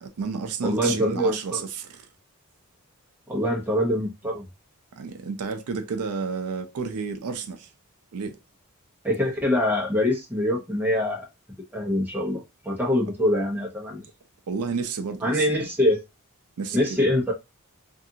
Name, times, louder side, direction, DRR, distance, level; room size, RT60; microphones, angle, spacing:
voice 1, 0.0-2.1 5.0-7.7 8.1-8.4 14.5-15.6 16.6-17.0, right 5 dB, 85° right, 0.5 m, -31 dB
voice 2, 0.6-1.6 3.3-4.4 9.0-11.3 11.7-14.0 15.2-16.0 16.7-17.3, left 1 dB, 10° right, 0.8 m, -24 dB
2.6 x 2.4 x 2.7 m
head